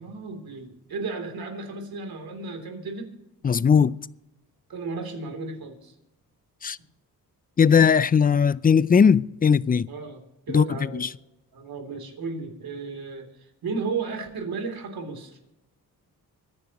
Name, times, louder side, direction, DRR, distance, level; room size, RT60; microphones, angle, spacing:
voice 1, 0.0-3.1 4.7-5.9 9.9-10.2 10.5-11.1 11.5-15.4, right 4 dB, 70° right, 3.3 m, -34 dB
voice 2, 3.4-4.0 6.6-6.8 7.6-9.9 10.5-10.6 10.9-11.1, left 6 dB, 25° left, 0.4 m, -18 dB
24.5 x 10.5 x 3.0 m
cardioid pair, 100°, 38 cm